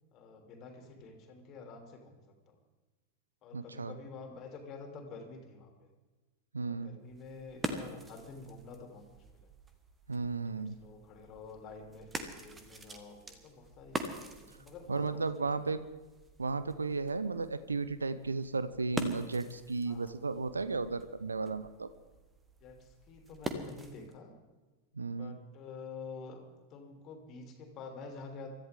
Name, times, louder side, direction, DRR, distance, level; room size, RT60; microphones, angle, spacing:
voice 1, 0.1-2.6 3.4-5.9 6.6-9.2 10.6-15.8 19.9-20.1 22.6-24.3 25.2-26.4 26.7-28.5, left 4 dB, 35° left, 3 dB, 3.2 m, -49 dB
voice 2, 3.5-4.0 6.5-7.0 10.1-10.7 14.9-15.8 16.4-21.9 24.9-25.4, right 4 dB, 75° right, 14 dB, 0.7 m, -34 dB
sound 1, 7.0-24.2, right 2 dB, 15° right, 1.6 m, -45 dB
24.0 x 14.0 x 3.7 m, 1.3 s
figure-of-eight pair, 90°, 0 cm